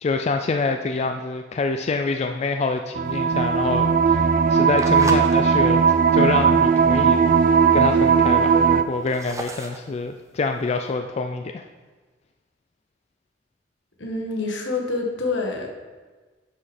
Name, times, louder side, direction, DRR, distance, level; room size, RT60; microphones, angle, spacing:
voice 1, 0.0-5.8 6.1-11.6, left 3 dB, 35° left, 5 dB, 0.3 m, -26 dB
sound 1, 2.9-8.8, right 6 dB, 45° right, 0.4 m, -18 dB
sound 2, 3.1-5.4 5.9-6.2 6.7-6.8 7.0-7.1 7.3-7.8 8.3-10.9, right 1 dB, 15° right, 0.7 m, -36 dB
voice 2, 14.0-15.7, left 3 dB, 75° left, 0 dB, 1.5 m, -27 dB
10.5 x 5.0 x 4.3 m, 1.3 s
head